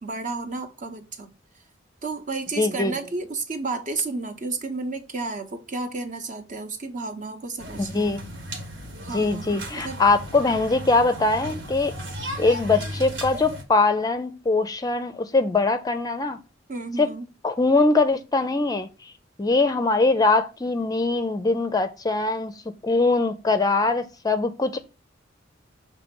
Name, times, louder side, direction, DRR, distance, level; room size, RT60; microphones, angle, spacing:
voice 1, 0.0-1.3 2.0-8.2 9.0-10.0 16.7-17.3, right 3 dB, 45° right, 0.9 m, -32 dB
voice 2, 2.6-2.9 7.8-8.2 9.1-11.9 12.4-16.4 17.0-17.1 17.4-18.9 19.4-22.5 22.8-24.8, left 3 dB, 20° left, 0.5 m, -22 dB
sound 1, 7.6-13.6, equal, 70° right, 1.5 m, -35 dB
6.4 x 3.2 x 5.2 m
head